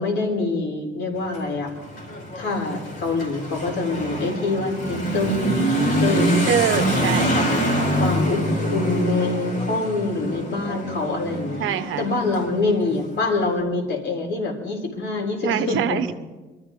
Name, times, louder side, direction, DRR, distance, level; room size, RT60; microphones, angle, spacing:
voice 1, 0.0-1.7 2.4-5.5 6.0-6.5 6.8-7.4 8.0-11.6 12.0-16.0, left 3 dB, 65° left, 1 dB, 4.0 m, -25 dB
Motorcycle / Accelerating revving vroom, 1.1-13.5, right 1 dB, 90° left, 4.6 m, -25 dB
voice 2, 6.5-7.3 11.6-12.1 15.4-16.1, right 10 dB, 85° right, 11 dB, 1.0 m, -24 dB
23.5 x 13.5 x 3.8 m, 1.2 s
cardioid pair, 90°, 20 cm